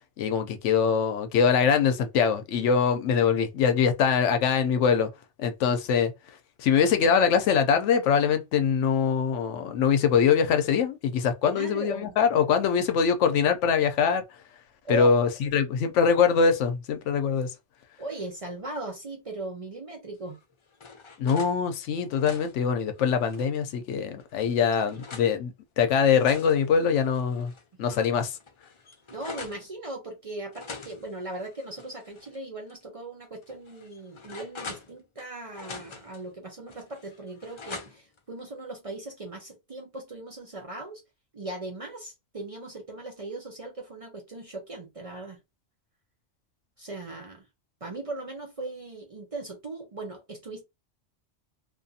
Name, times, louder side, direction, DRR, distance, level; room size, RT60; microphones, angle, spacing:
voice 1, 0.2-5.1 5.4-6.1 6.6-14.2 14.9-17.5 21.2-27.5 27.8-28.4, left 6 dB, 85° left, 0.9 m, -23 dB
voice 2, 11.5-12.2 14.8-15.2 18.0-20.4 24.4-24.5 24.8-25.0 27.9-28.1 29.1-41.0 41.3-45.4 46.8-47.5 47.8-50.6, right 2 dB, 40° right, 0.5 m, -38 dB
sound 1, 20.3-21.6 22.0-23.6 24.2-25.3 25.9-27.6 28.0-28.1 28.4-29.6 30.5-32.4 32.7-32.8 33.4-35.2 35.5-36.2 36.7-38.2, left 4 dB, 55° left, 0.3 m, -44 dB
2.5 x 2.4 x 2.6 m
omnidirectional pair, 1.2 m